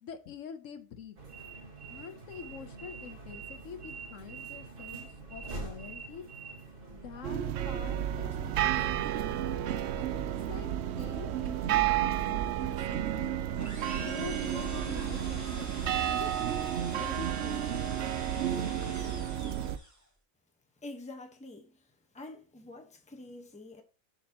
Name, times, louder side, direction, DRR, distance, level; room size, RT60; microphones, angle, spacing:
voice 1, 0.0-1.2 1.9-6.2 6.9-9.1 10.0-13.4 14.0-15.9 16.2-16.5 16.9-17.8, left 7 dB, 70° left, 1.1 m, -46 dB
sound 1, 1.2-9.2, right 4 dB, 40° right, 1.8 m, -45 dB
sound 2, 7.2-19.8, right 11 dB, 65° right, 0.7 m, -31 dB
sound 3, 13.6-20.1, equal, 15° right, 1.3 m, -45 dB
voice 2, 20.8-21.9 22.1-23.8, left 2 dB, 5° left, 0.9 m, -46 dB
11.0 x 4.3 x 2.9 m
omnidirectional pair, 1.4 m